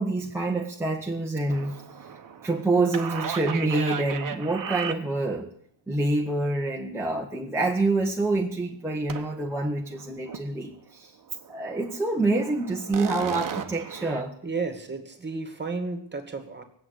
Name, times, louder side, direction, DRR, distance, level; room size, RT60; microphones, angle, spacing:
voice 1, 0.0-1.8 2.4-5.5 5.9-11.1 11.5-14.3, right 2 dB, 5° right, -3 dB, 1.4 m, -26 dB
sound 1, 1.5-5.4 9.1-9.6 9.9-10.5 10.9-11.0 11.4-14.2, right 7 dB, 40° right, 1.3 m, -36 dB
voice 2, 14.4-16.6, right 4 dB, 20° right, 7 dB, 2.2 m, -32 dB
18.0 x 8.0 x 9.8 m, 0.68 s
wide cardioid pair, 145°, 47 cm